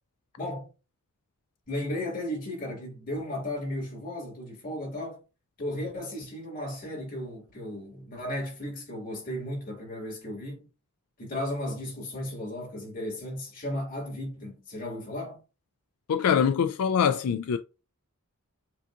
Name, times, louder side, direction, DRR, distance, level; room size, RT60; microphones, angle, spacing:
voice 1, 0.4-0.7 1.7-5.2 5.6-10.7 11.2-15.4, left 1 dB, 40° left, 2.3 m, -35 dB
voice 2, 16.1-17.6, left 7 dB, 85° left, 0.4 m, -24 dB
7.5 x 2.8 x 2.5 m
head